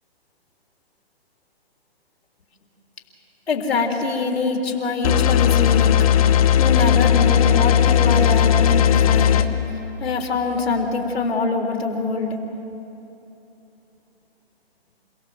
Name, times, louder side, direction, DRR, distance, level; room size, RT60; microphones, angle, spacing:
voice 1, 3.5-5.9 6.6-9.5 10.0-12.4, left 3 dB, 75° left, 2 dB, 3.8 m, -23 dB
sound 1, 5.0-9.4, left 9 dB, 35° left, 1.0 m, -16 dB
28.5 x 17.5 x 7.8 m, 3.0 s
hypercardioid pair, 155°, 31 cm